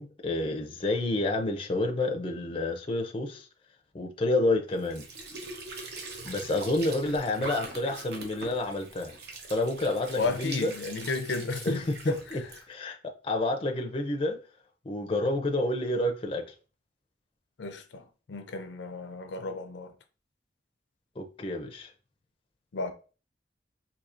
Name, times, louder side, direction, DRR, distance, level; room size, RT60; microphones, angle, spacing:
voice 1, 0.0-3.5 3.9-5.0 6.2-9.1 9.5-10.7 11.6-12.4 12.7-14.4 14.8-16.5 21.2-21.9, left 2 dB, 30° left, 0.5 m, -29 dB
Squeak / Sink (filling or washing) / Trickle dribble, 4.7-12.6, right 2 dB, 65° right, 0.8 m, -42 dB
voice 2, 10.1-12.5 17.6-19.9 22.7-22.9, left 3 dB, 85° left, 0.5 m, -33 dB
4.2 x 2.8 x 2.5 m
head